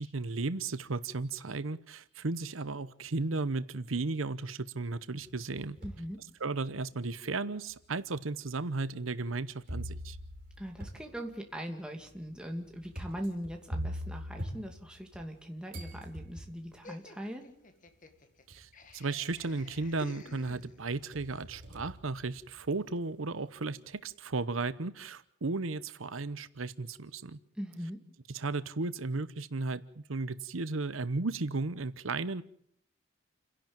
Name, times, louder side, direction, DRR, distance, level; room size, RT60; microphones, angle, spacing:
voice 1, 0.0-5.8 6.4-10.2 18.5-27.4 28.3-32.4, right 3 dB, 90° right, 14 dB, 0.9 m, -35 dB
sound 1, 5.2-6.1 6.7-6.8 7.7-7.8 9.7-15.4 15.7-16.7 17.9-18.0 18.5-18.9 19.3-20.1 20.5-22.8, equal, 45° right, 5.7 m, -43 dB
voice 2, 5.8-6.2 10.6-17.4 27.6-28.0, equal, 5° right, 3 dB, 2.5 m, -40 dB
Laughter, 16.8-21.1, left 2 dB, 40° left, 1.7 m, -52 dB
29.0 x 11.5 x 8.9 m, 0.65 s
head